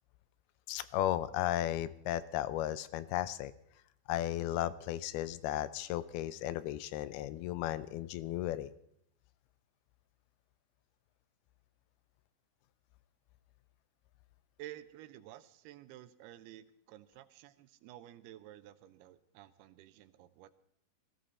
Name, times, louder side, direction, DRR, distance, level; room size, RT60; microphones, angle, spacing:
voice 1, 0.7-3.5 4.1-8.7, left 13 dB, 85° left, 15 dB, 2.6 m, -35 dB
voice 2, 14.6-20.5, right 13 dB, 85° right, 13 dB, 2.7 m, -52 dB
18.5 x 14.5 x 4.2 m, 0.72 s
omnidirectional pair, 4.5 m